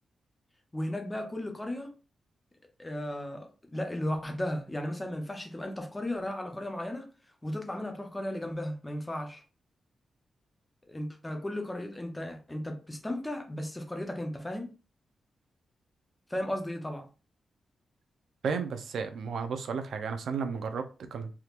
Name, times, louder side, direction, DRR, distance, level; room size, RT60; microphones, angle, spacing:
voice 1, 0.7-1.9 2.8-7.1 7.4-9.4 10.9-14.7 16.3-17.1, left 1 dB, 10° left, 0.6 m, -35 dB
voice 2, 18.4-21.3, right 5 dB, 65° right, 0.5 m, -33 dB
3.5 x 2.9 x 2.4 m
wide cardioid pair, 175°, 0 cm